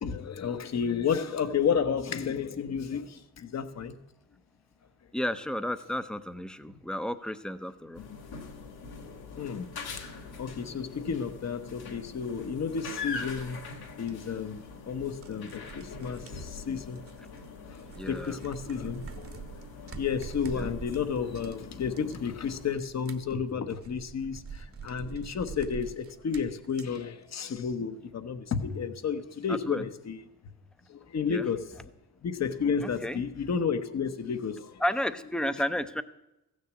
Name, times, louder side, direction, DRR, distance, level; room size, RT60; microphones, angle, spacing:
voice 1, 0.0-3.9 9.4-9.7 10.0-10.1 10.4-13.6 14.0-17.0 17.7-19.4 19.8-30.2 30.9-31.8 32.2-34.8, left 6 dB, 45° left, 1.0 m, -32 dB
voice 2, 5.1-8.0 18.0-18.4 20.5-20.7 29.5-29.8 31.3-31.5 32.8-33.2 34.8-36.0, left 1 dB, ahead, 0.6 m, -32 dB
sound 1, 7.9-22.7, left 4 dB, 75° left, 2.6 m, -43 dB
sound 2, 14.1-14.2 15.0-17.5 17.7-27.0, right 6 dB, 35° right, 1.0 m, -45 dB
14.5 x 6.5 x 8.2 m
cardioid pair, 105°, 38 cm